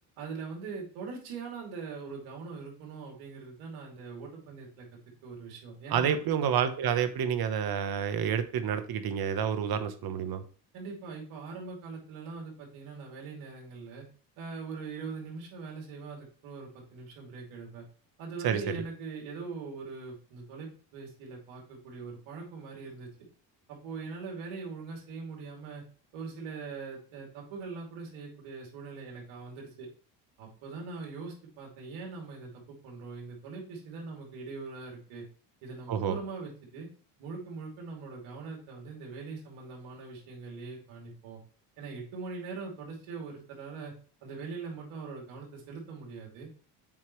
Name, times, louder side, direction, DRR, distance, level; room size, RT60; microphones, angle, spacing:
voice 1, 0.2-4.9 5.2-6.2 10.7-14.0 14.4-17.8 18.2-23.3 23.7-25.8 26.1-29.9 30.4-35.3 35.6-36.9 37.2-41.4 41.8-43.9 44.2-46.5, right 4 dB, 75° right, -1 dB, 2.9 m, -42 dB
voice 2, 5.9-10.4 18.4-18.8 35.9-36.1, right 8 dB, 50° right, 9 dB, 1.0 m, -29 dB
7.4 x 4.6 x 3.1 m, 0.40 s
supercardioid pair, 95°, 48 cm